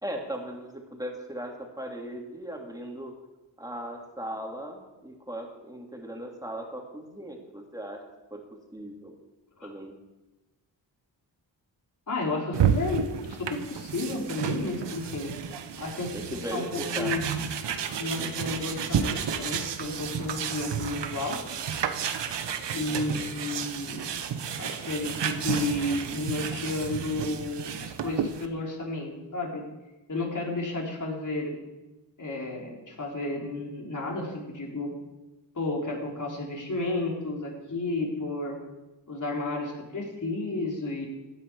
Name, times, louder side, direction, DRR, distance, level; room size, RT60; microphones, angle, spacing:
voice 1, 0.0-3.1 3.6-8.0 8.3-8.4 8.7-9.1 9.6-9.9 16.1-17.1 22.9-23.3, right 1 dB, 10° right, 1 dB, 3.0 m, -38 dB
voice 2, 12.1-15.3 15.8-17.2 18.0-21.4 22.7-24.1 24.6-29.6 30.1-31.6 32.2-34.9 35.5-38.6 39.1-41.1, left 2 dB, 45° left, -1 dB, 4.0 m, -32 dB
sound 1, 12.5-28.5, right 8 dB, 80° right, 1.1 m, -31 dB
15.5 x 10.0 x 4.8 m, 1.1 s
cardioid pair, 65°, 42 cm